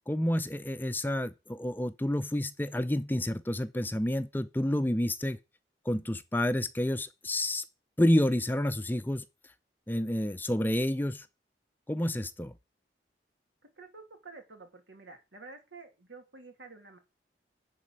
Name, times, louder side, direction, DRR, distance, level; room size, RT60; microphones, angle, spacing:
voice 1, 0.1-5.4 5.9-7.6 8.0-9.2 9.9-11.3 11.9-12.5, left 1 dB, 10° left, 0.5 m, -29 dB
voice 2, 13.6-17.0, right 3 dB, 90° right, 2.7 m, -50 dB
10.5 x 4.3 x 7.4 m
head